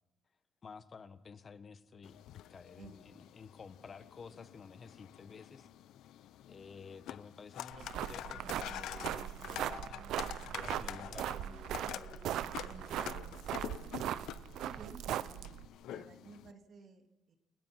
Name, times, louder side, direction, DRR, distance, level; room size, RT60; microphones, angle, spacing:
voice 1, 0.6-5.7 6.5-10.0 10.5-11.5, left 5 dB, 45° left, 11 dB, 1.4 m, -52 dB
sound 1, 2.0-16.5, left 12 dB, 85° left, 0.6 m, -47 dB
voice 2, 2.8-3.3 12.6-14.0 14.6-17.4, right 5 dB, 60° right, 5 dB, 2.5 m, -55 dB
sound 2, 7.7-15.7, right 11 dB, 85° right, 0.7 m, -39 dB
sound 3, 7.8-15.3, equal, 5° right, 1.7 m, -57 dB
29.0 x 16.5 x 5.9 m, 1.0 s
cardioid pair, 90°, 0 cm